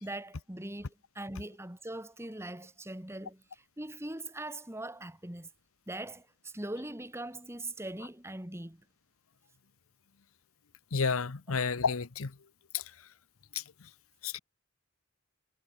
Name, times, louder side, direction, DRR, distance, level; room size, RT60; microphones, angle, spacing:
voice 1, 0.0-5.5 5.9-8.8, right 1 dB, 10° right, 1.8 m, -41 dB
voice 2, 10.9-12.3 12.7-12.8 13.5-13.6 14.2-14.4, left 5 dB, 85° left, 0.9 m, -30 dB
head